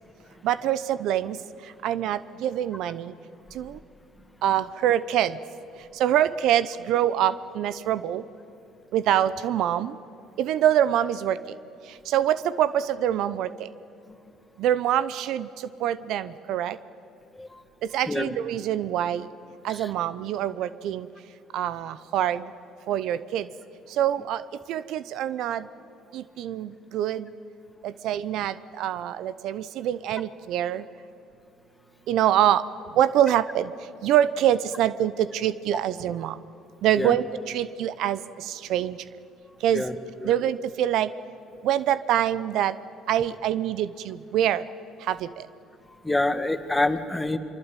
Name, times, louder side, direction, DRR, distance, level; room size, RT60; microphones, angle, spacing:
voice 1, 0.4-1.4 1.8-3.1 3.5-3.8 4.4-5.4 5.9-8.2 8.9-9.9 10.4-11.6 12.1-13.7 14.6-15.5 15.8-16.8 17.9-19.3 19.6-21.1 21.5-22.4 22.9-23.5 24.0-24.4 24.7-25.7 26.1-27.3 27.8-30.8 32.1-32.6 32.9-33.7 34.0-36.4 36.8-39.0 39.6-39.9 40.2-41.1 41.6-42.8 43.1-44.6 45.1-45.5, right 11 dB, 70° right, 16 dB, 0.7 m, -25 dB
voice 2, 46.0-47.4, left 2 dB, 15° left, 9 dB, 2.0 m, -26 dB
24.5 x 23.5 x 9.1 m, 2.7 s
supercardioid pair, 70°, 0 cm